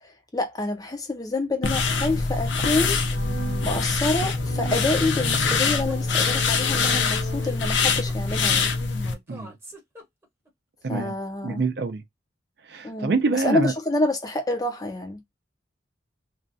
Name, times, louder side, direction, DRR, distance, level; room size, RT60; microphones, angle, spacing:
voice 1, 0.0-3.0 3.6-8.7 10.9-11.6 12.8-15.2, left 2 dB, 20° left, 0.4 m, -27 dB
sound 1, 1.6-9.1, left 4 dB, 70° left, 0.5 m, -24 dB
sound 2, 3.1-8.1, right 1 dB, 50° left, 0.9 m, -36 dB
sound 3, 4.4-10.5, equal, 10° right, 0.8 m, -43 dB
voice 2, 10.8-11.2 11.4-12.0 12.7-13.7, right 3 dB, 55° right, 0.4 m, -26 dB
2.4 x 2.2 x 2.5 m
head